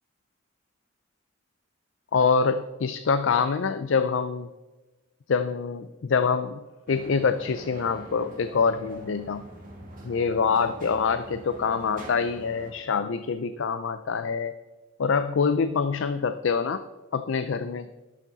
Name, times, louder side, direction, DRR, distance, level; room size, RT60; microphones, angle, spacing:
voice 1, 2.1-4.5 5.3-6.6 6.9-9.4 10.0-14.5 15.0-16.8 17.1-17.9, left 5 dB, 70° left, 11 dB, 0.4 m, -25 dB
sound 1, 6.9-12.7, right 1 dB, 40° right, 2.0 m, -44 dB
11.5 x 7.1 x 4.0 m, 1.1 s
head